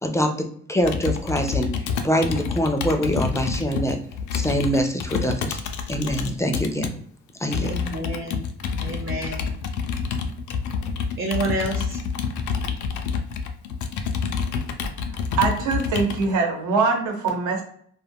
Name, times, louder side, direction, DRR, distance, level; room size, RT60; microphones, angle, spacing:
voice 1, 0.0-4.0 4.3-5.6 5.9-6.9 7.4-7.7, equal, 10° left, 4 dB, 0.4 m, -24 dB
Computer keyboard, 0.8-6.9 7.5-16.3, left 6 dB, 75° left, 0.5 m, -28 dB
voice 2, 7.7-8.4 8.8-9.5 11.2-12.0, right 2 dB, 45° right, 1 dB, 0.7 m, -28 dB
voice 3, 15.4-17.6, right 4 dB, 80° right, 2 dB, 1.0 m, -22 dB
2.4 x 2.1 x 3.4 m, 0.62 s
cardioid pair, 90°, 30 cm